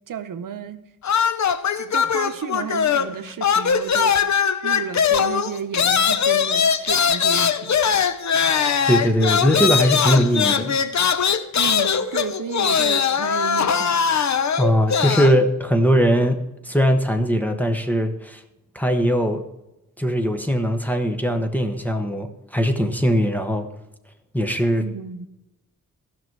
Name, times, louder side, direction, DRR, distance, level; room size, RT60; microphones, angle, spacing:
voice 1, 0.1-0.8 1.8-4.2 4.6-7.8 8.1-8.2 11.6-14.0 24.8-25.3, right 8 dB, 75° right, 10 dB, 0.8 m, -32 dB
sound 1, 1.0-3.2 3.4-15.4, left 7 dB, 60° left, 0.7 m, -21 dB
voice 2, 8.9-10.8 14.6-18.4 18.7-19.4 20.0-23.7 24.3-24.8, equal, 5° left, 6 dB, 1.0 m, -20 dB
15.0 x 6.1 x 4.7 m, 0.92 s
wide cardioid pair, 125°, 32 cm